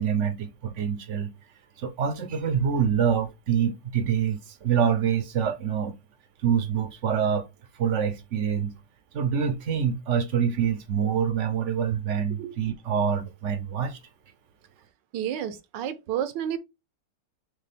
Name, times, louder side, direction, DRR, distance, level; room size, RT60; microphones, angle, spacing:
voice 1, 0.0-1.3 1.8-6.0 6.4-7.5 7.8-8.8 9.1-14.0, right 7 dB, 55° right, 0.9 m, -26 dB
voice 2, 15.1-16.6, right 10 dB, 80° right, 1.4 m, -30 dB
6.5 x 2.4 x 3.4 m
omnidirectional pair, 2.0 m